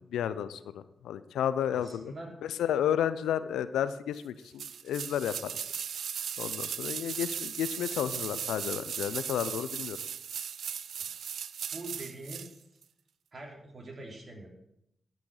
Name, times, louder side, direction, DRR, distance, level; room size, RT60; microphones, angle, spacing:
voice 1, 0.0-2.1 2.6-5.5 6.4-10.0, left 9 dB, 85° left, 14 dB, 0.4 m, -32 dB
voice 2, 1.7-2.4 11.0-11.1 11.7-12.6 13.3-14.5, right 1 dB, 50° right, -1 dB, 3.4 m, -44 dB
sound 1, 4.6-12.5 12.8-12.9, right 8 dB, 75° right, 0.4 m, -37 dB
13.5 x 6.1 x 4.8 m, 0.79 s
supercardioid pair, 40°, 0 cm